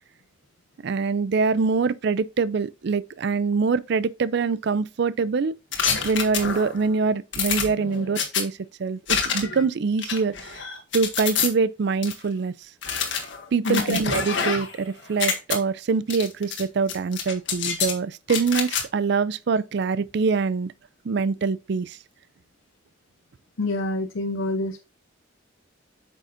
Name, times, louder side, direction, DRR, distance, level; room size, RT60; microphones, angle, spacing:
voice 1, 0.8-5.5 6.0-10.6 10.9-12.5 13.5-20.7 21.1-22.0, right 4 dB, 60° right, 0.4 m, -24 dB
sound 1, 5.7-6.8 7.3-8.4 9.1-9.6 10.0-11.5 12.0-12.1 12.8-14.8 15.1-15.6 16.1-16.6 16.9-17.9 18.3-18.8, left 6 dB, 65° left, 1.6 m, -27 dB
voice 2, 13.6-14.0 23.6-24.8, left 2 dB, 80° left, 0.7 m, -26 dB
8.5 x 6.3 x 2.6 m
head